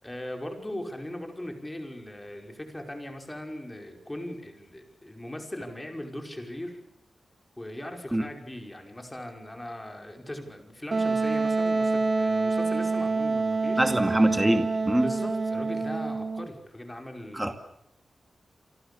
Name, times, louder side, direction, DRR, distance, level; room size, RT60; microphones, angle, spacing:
voice 1, 0.0-6.8 7.6-13.9 15.0-17.5, left 1 dB, 15° left, 4 dB, 5.2 m, -39 dB
Wind instrument woodwind instrument, 10.9-16.5, right 3 dB, 40° right, 2.1 m, -27 dB
voice 2, 13.8-15.1 17.3-17.5, right 1 dB, 10° right, 7 dB, 2.2 m, -23 dB
29.0 x 24.5 x 6.9 m, 0.75 s
wide cardioid pair, 115°, 0 cm